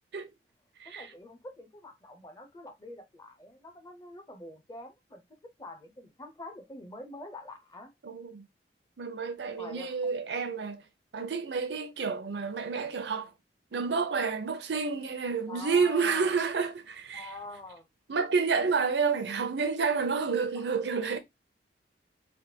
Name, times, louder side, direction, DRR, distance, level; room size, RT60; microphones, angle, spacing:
voice 1, 0.8-5.2 5.6-7.9 9.6-10.2 15.5-16.4 17.1-17.9 20.5-21.0, left 2 dB, 20° left, 0.6 m, -46 dB
voice 2, 8.0-8.5 9.0-10.8 11.1-13.3 13.7-17.3 18.1-21.2, right 5 dB, 75° right, 0.6 m, -29 dB
3.4 x 2.2 x 2.7 m
head